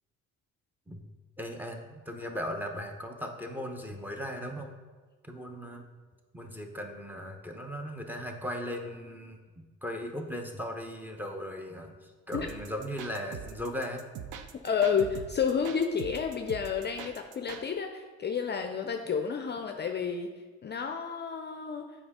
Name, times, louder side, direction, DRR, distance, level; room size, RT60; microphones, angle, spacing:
voice 1, 1.4-4.7 5.2-5.8 6.3-14.0, equal, 5° right, 3 dB, 0.8 m, -38 dB
sound 1, 12.3-17.6, right 7 dB, 80° right, 0.6 m, -43 dB
voice 2, 14.6-20.3 20.6-21.9, left 6 dB, 35° left, 5 dB, 0.5 m, -30 dB
7.7 x 4.8 x 3.6 m, 1.4 s
cardioid pair, 90°, 30 cm